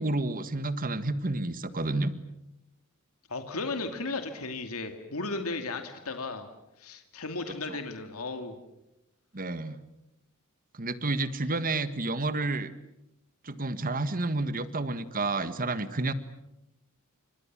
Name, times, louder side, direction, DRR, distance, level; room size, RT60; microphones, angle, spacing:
voice 1, 0.0-2.1 7.7-7.8 9.3-9.8 10.7-12.7 13.4-16.1, right 2 dB, 40° right, 12 dB, 1.7 m, -30 dB
voice 2, 3.3-6.5 6.8-8.6, left 3 dB, 85° left, 7 dB, 2.5 m, -35 dB
30.0 x 26.5 x 7.5 m, 0.90 s
head